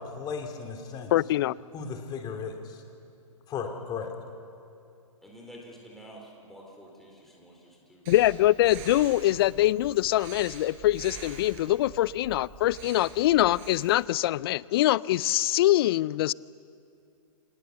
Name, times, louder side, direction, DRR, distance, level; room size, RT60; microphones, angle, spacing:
voice 1, 0.0-1.1 1.7-2.8 3.5-4.1, left 5 dB, 25° left, 4 dB, 2.9 m, -35 dB
voice 2, 1.1-1.5 8.1-16.3, left 15 dB, 45° left, 22 dB, 0.4 m, -24 dB
voice 3, 5.2-8.0 8.8-9.2, equal, ahead, -2 dB, 4.0 m, -49 dB
Breathing, 8.0-14.0, right 5 dB, 40° right, 5.3 m, -45 dB
26.0 x 20.0 x 7.1 m, 2.6 s
hypercardioid pair, 130°, 18 cm